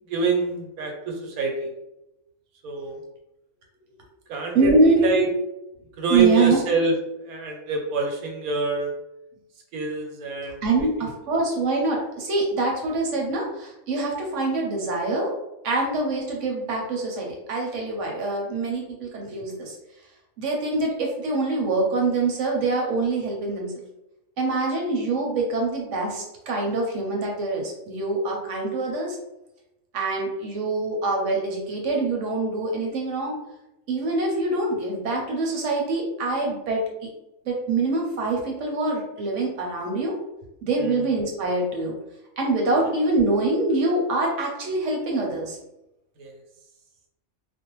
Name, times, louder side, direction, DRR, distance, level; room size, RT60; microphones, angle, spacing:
voice 1, 0.1-1.7 2.6-3.0 4.3-5.3 6.0-7.0 7.2-8.9 9.7-11.1 40.8-41.1 46.2-46.3, right 4 dB, 85° right, 2 dB, 1.1 m, -26 dB
voice 2, 4.5-5.3 6.1-6.6 10.6-15.3 15.6-19.8 20.4-23.7 24.4-29.2 29.9-33.3 33.9-36.8 37.5-40.2 40.6-42.0 42.4-45.6, right 2 dB, 65° right, -1 dB, 0.9 m, -24 dB
2.5 x 2.1 x 2.9 m, 0.92 s
omnidirectional pair, 1.5 m